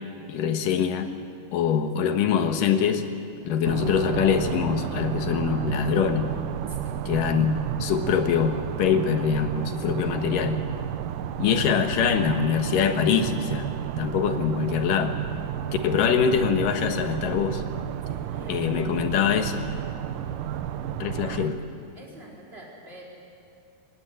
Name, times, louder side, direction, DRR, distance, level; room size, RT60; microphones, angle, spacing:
voice 1, 0.3-1.1 1.5-3.0 3.4-6.3 7.1-10.6 11.4-13.7 14.0-15.1 15.8-17.6 18.5-19.7 21.0-21.6, left 7 dB, 75° left, 7 dB, 2.9 m, -24 dB
sound 1, 3.6-21.5, right 10 dB, 75° right, 2.3 m, -32 dB
voice 2, 6.7-7.0 18.0-19.0 21.1-21.5 21.9-23.1, right 1 dB, 15° right, -3 dB, 4.6 m, -46 dB
23.0 x 18.5 x 9.9 m, 2.4 s
omnidirectional pair, 4.1 m